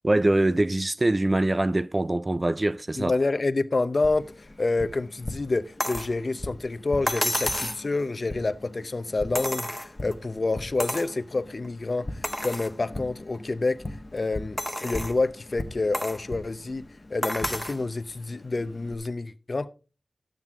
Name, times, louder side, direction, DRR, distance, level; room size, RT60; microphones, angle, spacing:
voice 1, 0.0-3.1, right 1 dB, 35° right, 0.4 m, -23 dB
voice 2, 3.0-13.8 14.1-16.8 17.1-19.7, left 3 dB, 55° left, 0.7 m, -28 dB
Tap, 4.0-19.0, left 1 dB, 35° left, 1.2 m, -41 dB
sound 1, 5.8-6.1 7.1-7.9 9.3-10.1 10.8-11.1 11.6-11.7 12.2-12.7 13.3-13.4 14.6-15.2 15.9-16.2 17.2-17.8 19.1-19.2, equal, 5° left, 0.7 m, -30 dB
12.0 x 9.1 x 3.6 m
cardioid pair, 50°, 0 cm